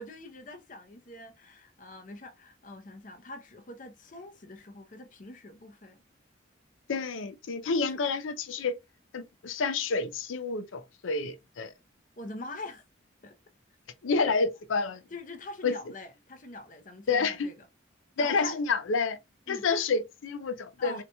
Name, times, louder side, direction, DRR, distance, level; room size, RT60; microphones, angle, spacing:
voice 1, 0.0-6.0 7.9-8.0 12.2-12.8 13.2-13.3 15.1-17.6 18.2-18.6 19.5-19.7 20.8-21.0, left 2 dB, 40° left, 0.6 m, -44 dB
voice 2, 6.9-8.8 9.1-11.7 14.0-15.0 15.6-15.8 17.1-17.5 18.2-19.2 19.5-21.0, left 4 dB, 80° left, 0.5 m, -29 dB
4.1 x 2.8 x 2.2 m
head